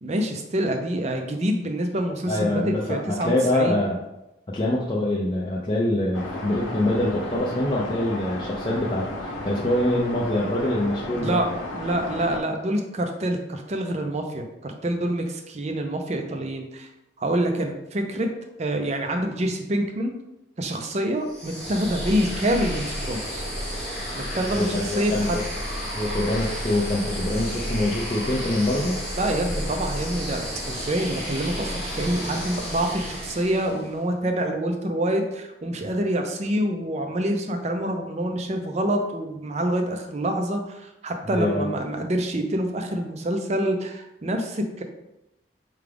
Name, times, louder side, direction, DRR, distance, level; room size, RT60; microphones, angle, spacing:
voice 1, 0.0-3.8 6.5-6.7 11.1-16.9 17.2-18.3 18.6-20.1 20.6-23.4 24.1-25.4 29.2-44.8, right 1 dB, 35° right, 4 dB, 0.4 m, -26 dB
voice 2, 2.3-4.0 4.5-9.1 9.4-11.4 24.6-25.4 25.9-29.0 41.3-41.7, left 1 dB, 25° left, -4 dB, 0.4 m, -24 dB
sound 1, 6.1-12.4, left 1 dB, 85° left, 0.7 m, -34 dB
sound 2, 21.2-33.9, equal, ahead, 0.9 m, -31 dB
4.9 x 2.3 x 3.3 m, 0.91 s
head